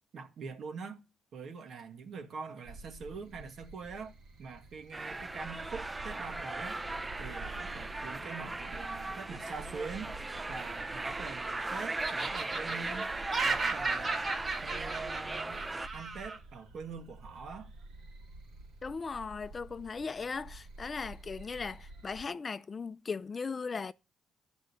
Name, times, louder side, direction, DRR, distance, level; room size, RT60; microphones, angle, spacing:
voice 1, 0.1-1.0 1.3-4.1 4.4-6.8 7.2-10.1 10.5-13.1 13.4-14.1 14.6-15.6 15.9-17.7, right 5 dB, 60° right, 2.0 m, -44 dB
sound 1, 2.6-22.2, right 2 dB, 85° right, 3.1 m, -50 dB
sound 2, 4.9-15.9, right 2 dB, 20° right, 0.6 m, -38 dB
Laughter, 10.8-11.6 12.0-16.4, right 3 dB, 40° right, 2.1 m, -35 dB
voice 2, 18.8-23.9, left 5 dB, 35° left, 0.5 m, -38 dB
11.0 x 5.3 x 8.3 m
cardioid pair, 90°, 0 cm